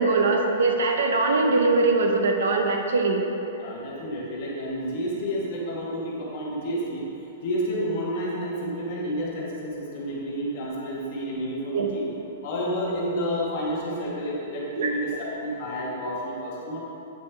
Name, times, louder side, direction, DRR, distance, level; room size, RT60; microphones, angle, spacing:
voice 1, 0.0-3.2 11.7-11.9 14.7-14.9, right 3 dB, 75° right, 3 dB, 0.7 m, -22 dB
voice 2, 3.6-7.0 7.4-12.1 12.4-16.8, equal, 35° left, -5 dB, 1.2 m, -30 dB
8.4 x 5.1 x 3.4 m, 2.9 s
hypercardioid pair, 175°, 0 cm